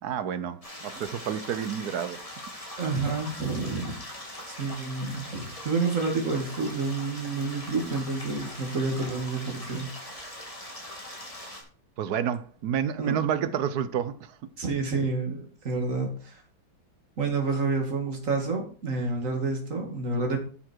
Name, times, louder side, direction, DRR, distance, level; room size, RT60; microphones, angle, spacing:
voice 1, 0.0-2.2 12.0-14.5, right 9 dB, 65° right, 1.1 m, -29 dB
sound 1, 0.6-11.6, left 1 dB, 15° left, 2.7 m, -41 dB
voice 2, 2.8-4.0 4.5-9.9 13.0-13.2 14.6-16.4 17.2-20.4, right 3 dB, 40° right, 2.7 m, -29 dB
11.5 x 7.0 x 4.6 m
omnidirectional pair, 2.1 m